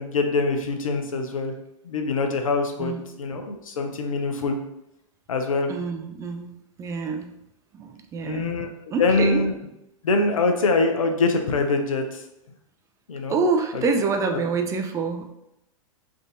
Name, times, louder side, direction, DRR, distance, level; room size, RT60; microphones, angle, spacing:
voice 1, 0.0-1.5 1.8-2.9 3.2-4.6 5.3-5.7 8.2-8.7 9.0-9.5 10.0-12.2 13.1-13.3, left 3 dB, 85° left, 4 dB, 0.6 m, -23 dB
voice 2, 2.8-3.1 5.7-7.3 7.7-8.6 8.9-9.4 13.3-15.3, right 4 dB, 20° right, 5 dB, 0.3 m, -26 dB
3.5 x 2.5 x 2.7 m, 0.85 s
hypercardioid pair, 110°, 17 cm